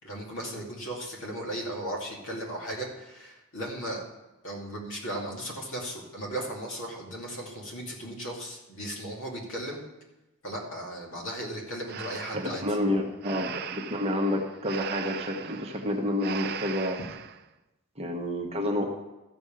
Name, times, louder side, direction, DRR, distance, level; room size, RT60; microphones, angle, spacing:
voice 1, 0.0-4.0 4.4-9.8 10.4-12.6, right 1 dB, 60° left, -1 dB, 2.7 m, -36 dB
Breathing, 11.9-17.4, right 9 dB, 45° right, 0.5 m, -39 dB
voice 2, 12.3-17.0 18.0-18.9, left 1 dB, 30° right, 2 dB, 1.2 m, -29 dB
13.5 x 5.4 x 7.4 m, 1.0 s
head